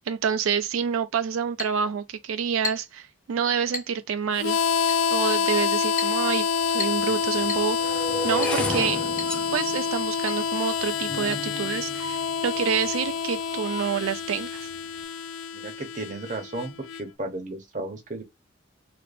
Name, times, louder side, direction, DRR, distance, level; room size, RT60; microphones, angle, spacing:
voice 1, 0.0-4.6 5.1-9.0 9.5-14.7, right 7 dB, 90° right, 0.3 m, -28 dB
Chink clink, 1.6-1.8 2.6-3.0 3.7-4.0 4.9-5.1 6.0-6.2 6.8-7.1 7.5-7.7 8.4-8.6 9.2-9.4 9.6-9.7 10.3-10.4 11.3-11.4, left 5 dB, 40° left, 0.7 m, -34 dB
Harmonica, 4.4-17.0, left 6 dB, 85° left, 0.4 m, -27 dB
sound 1, 7.0-13.1 13.8-14.2 14.4-14.8, left 1 dB, 5° left, 0.4 m, -34 dB
voice 2, 15.5-16.7 17.0-18.2, right 2 dB, 40° right, 0.8 m, -34 dB
3.3 x 2.9 x 2.5 m
head